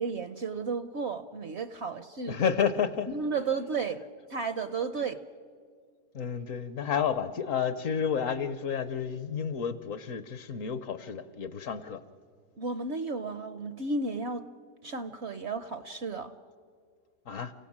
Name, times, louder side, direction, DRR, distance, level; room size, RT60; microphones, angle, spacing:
voice 1, 0.0-2.4 3.1-4.0 4.3-5.2 12.6-14.5 14.8-16.4, right 4 dB, 55° right, 12 dB, 0.8 m, -33 dB
voice 2, 2.3-3.1 6.1-12.0 17.3-17.5, left 7 dB, 60° left, 14 dB, 1.0 m, -30 dB
29.5 x 16.5 x 7.3 m, 2.1 s
omnidirectional pair, 1.7 m